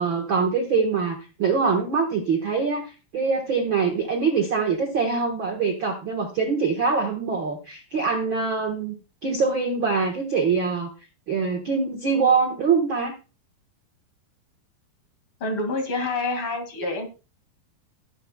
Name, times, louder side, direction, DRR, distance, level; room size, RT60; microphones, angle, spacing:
voice 1, 0.0-8.9 9.2-10.9 11.3-13.1, right 5 dB, 70° right, 2 dB, 1.1 m, -24 dB
voice 2, 15.4-17.1, left 2 dB, 40° left, 5 dB, 2.5 m, -27 dB
13.5 x 10.5 x 2.3 m, 0.31 s
omnidirectional pair, 4.4 m